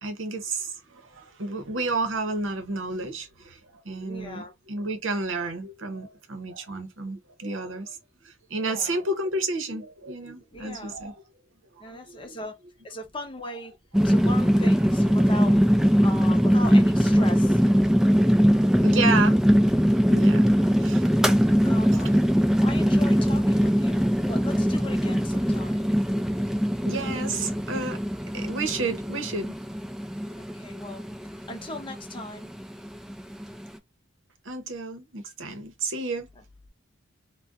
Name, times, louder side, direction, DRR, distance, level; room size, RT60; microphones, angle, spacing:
voice 1, 0.0-8.0 8.2-11.1 11.9-12.2 18.8-19.4 20.1-21.2 26.8-28.0 28.3-29.6 34.4-36.3, right 3 dB, 80° right, 0.8 m, -31 dB
voice 2, 4.0-4.5 8.6-9.0 10.5-11.1 11.8-12.6 12.8-13.7 14.0-15.6 16.0-17.6 21.6-22.2 22.6-25.9 30.4-31.0 31.5-32.5, left 2 dB, 25° left, 0.7 m, -38 dB
sound 1, 13.9-33.8, equal, 5° right, 0.3 m, -21 dB
2.5 x 2.2 x 3.5 m
head